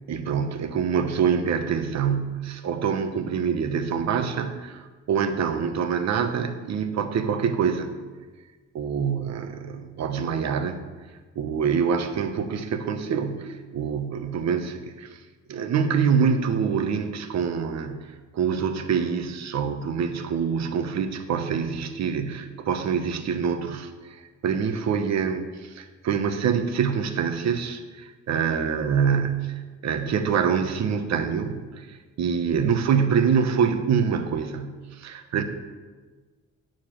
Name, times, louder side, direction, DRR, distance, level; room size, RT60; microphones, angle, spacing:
voice 1, 0.1-7.9 8.7-10.8 11.3-15.2 15.5-18.1 18.3-35.4, right 6 dB, 60° right, 8 dB, 1.1 m, -25 dB
9.0 x 5.0 x 7.5 m, 1.4 s
cardioid pair, 90°, 30 cm